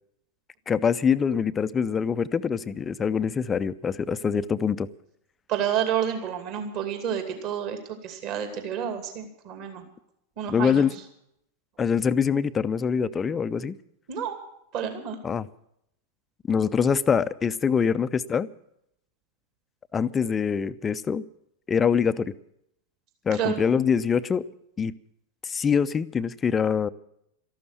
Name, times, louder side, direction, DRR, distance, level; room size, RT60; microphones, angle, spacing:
voice 1, 0.7-4.9 10.5-10.9 11.8-13.8 15.2-15.5 16.5-18.5 19.9-21.2 21.7-22.3 23.3-24.4 24.8-24.9 25.4-26.9, left 6 dB, 20° left, 0.6 m, -24 dB
voice 2, 5.5-9.8 10.4-10.9 14.1-14.4 14.7-15.2 23.3-23.6, right 9 dB, 40° right, 2.6 m, -29 dB
13.5 x 12.0 x 8.1 m
figure-of-eight pair, 90°, 0 cm